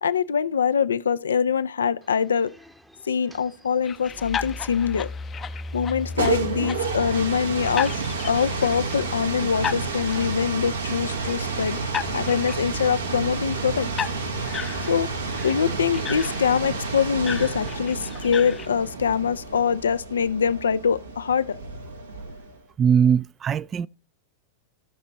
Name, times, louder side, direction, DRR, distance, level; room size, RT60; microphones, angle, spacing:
voice 1, 0.0-2.5 3.0-5.1 5.7-8.0 8.2-11.8 12.1-13.9 14.9-15.1 15.4-21.6, left 7 dB, 80° left, 0.5 m, -24 dB
sound 1, 2.0-16.1, right 1 dB, 5° right, 0.8 m, -39 dB
sound 2, 3.8-18.7, left 8 dB, 30° left, 0.6 m, -36 dB
sound 3, 5.9-22.6, right 4 dB, 85° right, 1.3 m, -30 dB
voice 2, 22.8-23.9, right 7 dB, 30° right, 0.3 m, -20 dB
15.0 x 6.2 x 2.9 m
hypercardioid pair, 95°, 0 cm